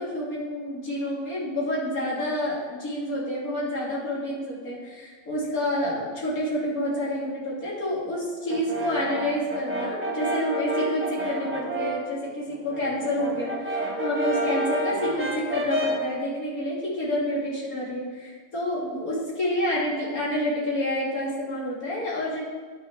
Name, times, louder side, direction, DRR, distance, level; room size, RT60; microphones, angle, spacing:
voice 1, 0.0-22.4, left 1 dB, 75° left, -6 dB, 3.2 m, -28 dB
Brass instrument, 8.5-12.1 12.5-16.1, right 1 dB, 10° right, 1.0 m, -30 dB
10.0 x 6.3 x 5.8 m, 1.5 s
omnidirectional pair, 1.5 m